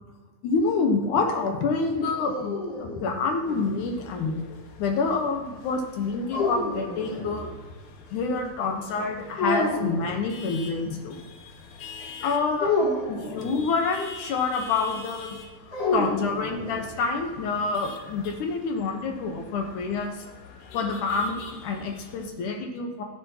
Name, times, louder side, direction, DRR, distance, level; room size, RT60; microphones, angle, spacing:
voice 1, 0.4-7.5 8.1-11.2 12.0-15.4 15.9-20.2 20.7-23.0, left 4 dB, 70° left, 3 dB, 2.1 m, -27 dB
sound 1, 2.0-3.8 6.3-7.5 9.4-10.2 12.6-13.7 15.7-16.9, left 2 dB, 35° left, 2.4 m, -29 dB
sound 2, 3.5-22.3, left 5 dB, 85° left, 2.8 m, -46 dB
12.5 x 10.5 x 2.9 m, 1.3 s
omnidirectional pair, 4.4 m